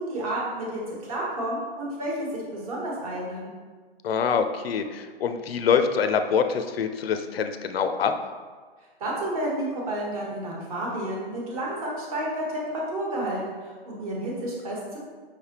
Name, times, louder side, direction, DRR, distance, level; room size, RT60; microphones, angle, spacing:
voice 1, 0.0-3.5 9.0-12.6 12.9-15.0, right 1 dB, 35° right, -3 dB, 1.1 m, -31 dB
voice 2, 4.0-8.1, left 6 dB, 70° left, 8 dB, 0.5 m, -25 dB
5.2 x 3.3 x 2.8 m, 1.4 s
hypercardioid pair, 160°, 31 cm